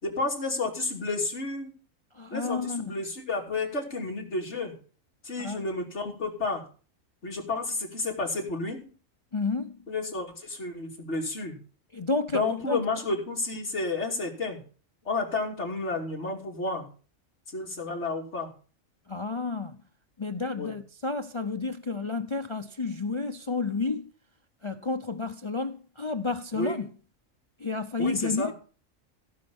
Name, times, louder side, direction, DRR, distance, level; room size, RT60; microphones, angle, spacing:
voice 1, 0.0-1.7 2.3-4.7 5.2-6.6 7.2-8.8 9.9-11.6 12.3-14.6 15.0-16.9 17.5-18.5 20.5-20.8 26.5-26.8 28.0-28.5, left 3 dB, 55° left, 3.2 m, -31 dB
voice 2, 2.1-2.9 5.4-5.6 9.3-9.8 11.9-12.8 19.1-19.8 20.2-24.1 24.6-26.9 27.6-28.5, left 3 dB, 40° left, 0.4 m, -31 dB
16.0 x 5.4 x 7.0 m
omnidirectional pair, 1.4 m